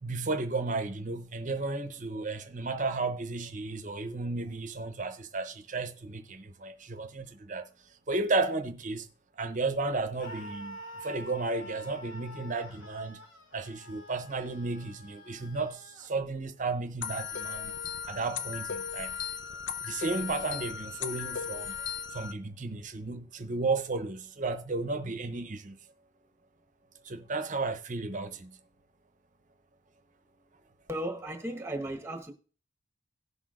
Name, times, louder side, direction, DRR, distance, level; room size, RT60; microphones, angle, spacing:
voice 1, 0.0-7.7 8.1-9.1 9.4-13.2 13.5-17.7 18.1-19.2 19.8-21.9 22.1-25.8 27.0-28.6, right 3 dB, 40° right, 0.7 m, -33 dB
Screaming, 10.2-16.1, equal, 80° left, 1.8 m, -47 dB
sound 1, 17.0-22.3, left 7 dB, 60° left, 0.6 m, -37 dB
voice 2, 30.9-32.3, right 1 dB, 15° right, 1.1 m, -35 dB
18.0 x 6.0 x 2.5 m
head